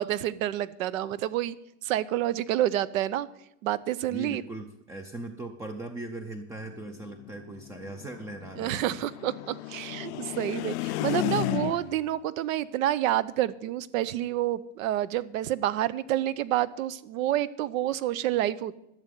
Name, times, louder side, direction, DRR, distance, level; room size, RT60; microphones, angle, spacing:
voice 1, 0.0-1.5 1.8-3.3 3.6-4.4 8.6-18.8, right 13 dB, 90° right, 18 dB, 0.8 m, -28 dB
voice 2, 4.1-8.9 10.1-10.2 10.9-11.2, right 2 dB, 10° right, 6 dB, 0.3 m, -39 dB
sound 1, 6.6-12.1, left 17 dB, 60° left, 0.5 m, -34 dB
12.5 x 6.6 x 9.0 m, 0.84 s
supercardioid pair, 145°, 40 cm